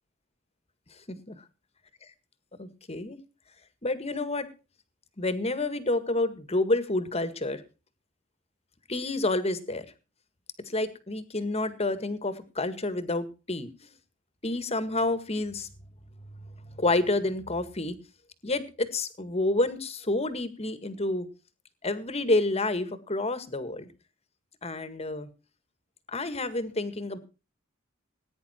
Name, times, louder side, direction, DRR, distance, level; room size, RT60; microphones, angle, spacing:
voice 1, 2.6-3.2 3.8-4.5 5.2-7.6 8.9-9.9 10.7-13.7 14.4-15.7 16.7-18.0 18.4-21.3 21.8-23.9 24.6-25.3 26.1-27.2, left 2 dB, 30° left, 12 dB, 1.8 m, -29 dB
19.0 x 10.0 x 4.4 m, 0.33 s
head